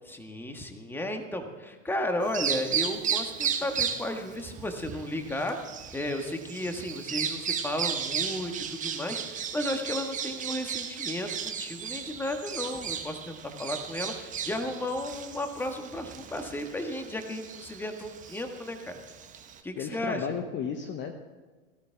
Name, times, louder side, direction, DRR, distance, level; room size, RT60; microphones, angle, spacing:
voice 1, 0.1-5.6 5.9-19.0 19.6-20.4, left 1 dB, 5° left, 5 dB, 1.5 m, -34 dB
Bird vocalization bird call bird song, 2.2-19.6, right 7 dB, 20° right, 1.0 m, -35 dB
voice 2, 19.8-21.1, left 7 dB, 30° left, 6 dB, 1.0 m, -33 dB
17.5 x 13.0 x 3.5 m, 1.3 s
hypercardioid pair, 105°, 37 cm